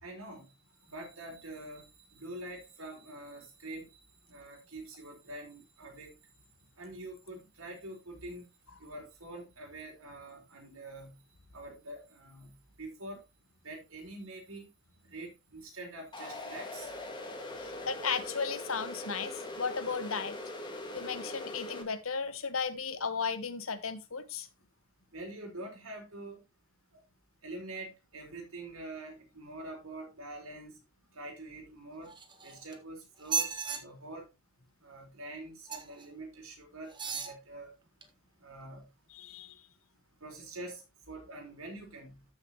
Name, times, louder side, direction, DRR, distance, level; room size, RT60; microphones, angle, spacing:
voice 1, 0.0-0.4 0.8-4.0 4.3-6.1 6.8-8.5 8.8-11.2 11.5-13.2 13.6-14.7 15.1-16.9 25.1-26.4 27.4-30.8 31.1-32.1 32.4-34.3 34.8-37.7 38.4-38.9 40.2-42.2, right 2 dB, 90° right, 4.7 m, -45 dB
sound 1, 16.1-21.8, left 1 dB, 20° left, 1.8 m, -41 dB
voice 2, 17.6-20.4 20.9-24.5 39.1-39.6, left 5 dB, 75° left, 1.2 m, -35 dB
sound 2, 32.1-32.8 33.2-33.8 35.7-36.0 36.9-37.4 38.0-38.1, right 6 dB, 20° right, 1.3 m, -35 dB
13.5 x 6.4 x 2.9 m
head